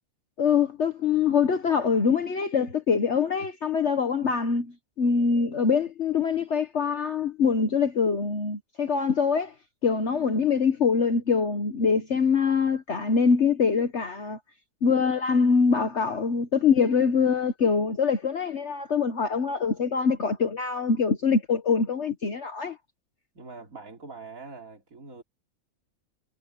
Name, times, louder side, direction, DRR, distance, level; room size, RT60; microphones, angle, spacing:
voice 1, 0.4-4.7 5.0-9.5 9.8-14.4 14.8-22.8, left 5 dB, 50° left, 1.5 m, -24 dB
voice 2, 23.4-25.2, right 4 dB, 65° right, 3.7 m, -43 dB
omnidirectional pair, 1.5 m